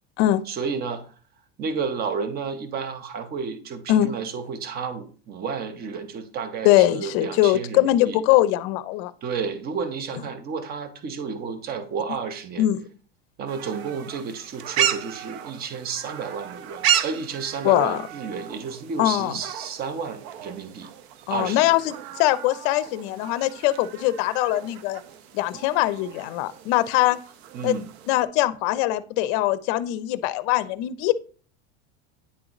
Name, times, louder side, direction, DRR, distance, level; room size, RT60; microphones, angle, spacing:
voice 1, 0.5-1.1 1.6-8.2 9.2-12.7 13.4-20.9 21.3-21.7 27.5-27.9, right 5 dB, 30° right, 10 dB, 0.7 m, -31 dB
voice 2, 6.6-9.1 12.6-12.8 17.6-18.0 19.0-19.4 21.3-25.0 25.3-27.2 27.6-27.8 28.1-31.1, left 15 dB, 55° left, 15 dB, 0.5 m, -22 dB
sound 1, 13.5-28.2, right 10 dB, 75° right, 0.7 m, -33 dB
9.5 x 3.8 x 3.0 m, 0.41 s
supercardioid pair, 140°, 33 cm